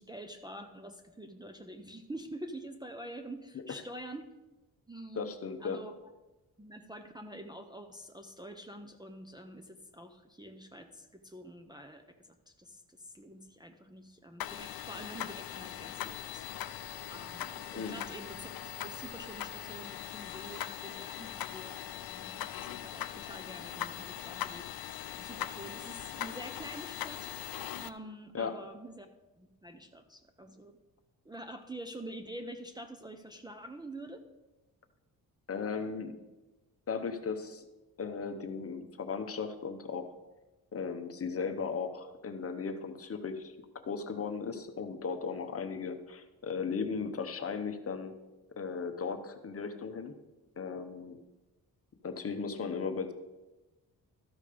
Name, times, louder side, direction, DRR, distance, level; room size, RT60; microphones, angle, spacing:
voice 1, 0.0-4.3 4.9-5.3 5.6-5.9 6.6-12.0 12.5-16.7 17.1-18.5 18.8-24.7 25.2-27.5 27.8-29.1 29.4-30.8 31.3-34.2, right 1 dB, 10° right, 3 dB, 0.5 m, -46 dB
voice 2, 5.1-5.8 17.8-18.0 28.3-28.6 35.5-36.2 36.9-37.6 38.0-40.1 40.7-48.1 48.6-50.1 50.6-51.2 52.0-53.1, left 5 dB, 40° left, 7 dB, 0.8 m, -36 dB
sound 1, 14.4-27.9, left 12 dB, 70° left, 0.5 m, -41 dB
13.5 x 5.1 x 5.0 m, 1.1 s
wide cardioid pair, 125°, 37 cm